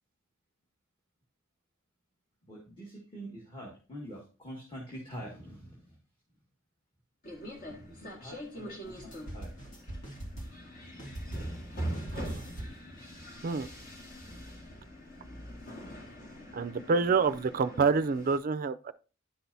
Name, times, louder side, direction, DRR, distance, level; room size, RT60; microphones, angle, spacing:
voice 1, 2.4-6.0 7.6-9.6 14.9-15.0, equal, 25° left, 1.7 m, -45 dB
sound 1, 7.2-18.4, equal, 45° left, 1.8 m, -43 dB
sound 2, 8.8-10.7 11.0-11.7 11.9-12.9, right 1 dB, 85° left, 2.2 m, -43 dB
voice 2, 12.1-12.5 13.4-13.7 16.5-18.9, right 5 dB, 40° right, 0.4 m, -27 dB
10.5 x 6.0 x 2.7 m
head